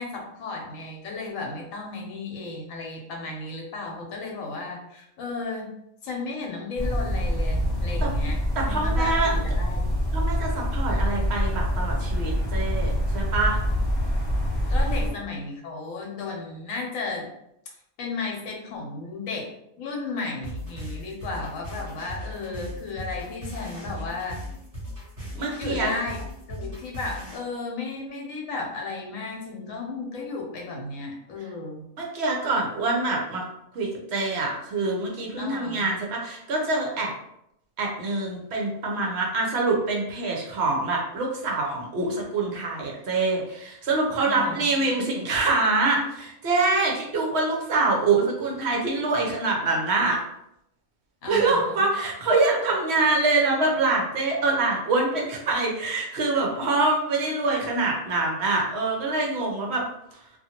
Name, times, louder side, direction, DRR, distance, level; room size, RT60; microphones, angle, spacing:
voice 1, 0.0-5.6 6.0-9.9 14.7-17.3 18.0-19.5 19.7-24.4 25.6-26.2 26.5-31.8 35.4-35.9 44.2-44.8 51.2-51.8, left 3 dB, 70° left, 0 dB, 1.1 m, -34 dB
sound 1, 6.8-15.1, equal, 30° left, 0.6 m, -25 dB
voice 2, 8.6-9.3 10.1-13.6 14.9-15.1 25.3-25.9 32.0-33.4 33.7-37.1 37.8-50.2 51.3-59.8, right 3 dB, 60° right, -1 dB, 0.8 m, -25 dB
sound 2, 20.4-27.4, equal, 30° right, 1.1 m, -37 dB
2.5 x 2.4 x 2.8 m, 0.79 s
omnidirectional pair, 1.5 m